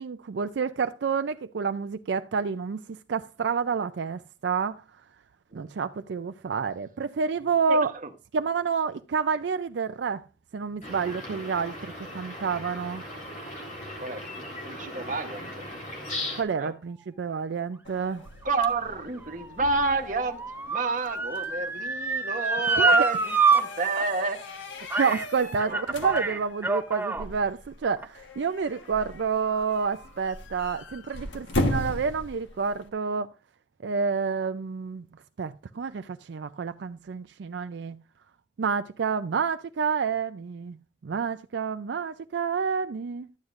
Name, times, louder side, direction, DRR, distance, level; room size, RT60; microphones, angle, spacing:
voice 1, 0.0-4.8 5.5-7.9 8.3-10.2 10.5-13.0 16.4-18.2 22.7-23.0 25.0-33.3 33.8-35.1 35.4-38.0 38.6-40.8 41.0-43.3, right 5 dB, 70° right, 0.4 m, -29 dB
voice 2, 7.7-8.1 14.0-15.5 16.6-16.7 18.4-20.4 20.7-24.4 25.7-25.8, right 3 dB, 45° right, 1.0 m, -29 dB
sound 1, 10.8-16.4, left 1 dB, 45° left, 3.8 m, -38 dB
sound 2, 17.8-32.9, left 1 dB, 85° left, 1.4 m, -38 dB
Motor vehicle (road) / Siren, 18.4-23.6 24.0-24.1 24.9-25.2 25.6-27.3 28.0-28.1, right 3 dB, 10° right, 0.7 m, -26 dB
12.5 x 9.6 x 2.5 m
head